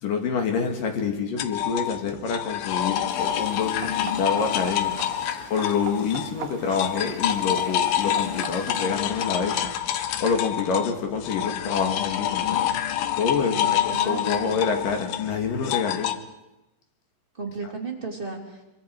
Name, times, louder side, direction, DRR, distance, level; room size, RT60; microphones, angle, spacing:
voice 1, 0.0-5.1 5.5-9.7 10.2-12.8 13.2-16.2 17.6-17.7, left 5 dB, 55° left, 4 dB, 3.1 m, -27 dB
sound 1, 1.4-6.4 6.6-16.2, left 11 dB, 80° left, 2.2 m, -27 dB
sound 2, 3.1-8.8, right 8 dB, 60° right, 3.2 m, -40 dB
voice 2, 13.5-14.6 17.4-18.7, right 4 dB, 15° right, -1 dB, 1.9 m, -35 dB
24.5 x 24.0 x 4.7 m, 0.96 s
omnidirectional pair, 5.5 m